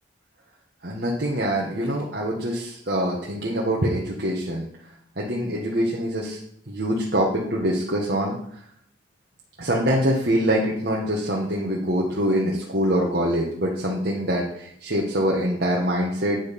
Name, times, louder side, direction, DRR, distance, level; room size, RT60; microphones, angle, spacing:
voice 1, 0.8-4.7 5.2-6.4 6.7-8.4 9.6-16.4, equal, 55° right, -3 dB, 1.4 m, -24 dB
9.4 x 6.5 x 5.3 m, 0.70 s
head